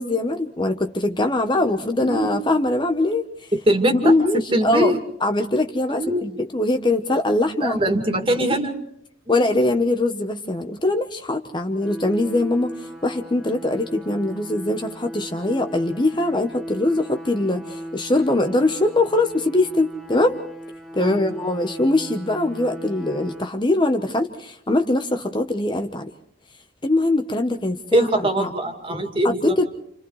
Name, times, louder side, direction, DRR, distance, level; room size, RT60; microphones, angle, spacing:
voice 1, 0.0-3.2 3.9-7.8 9.3-20.4 20.9-26.1 26.8-28.5 29.2-29.6, left 2 dB, 25° left, 6 dB, 1.0 m, -22 dB
voice 2, 2.0-2.5 3.5-4.1 4.5-5.0 6.0-6.2 7.6-8.8 9.3-9.4 21.0-21.2 27.9-29.6, right 1 dB, 30° right, 4 dB, 2.4 m, -22 dB
sound 1, 11.8-23.5, equal, ahead, 1.3 m, -37 dB
29.0 x 28.5 x 3.2 m, 0.69 s
head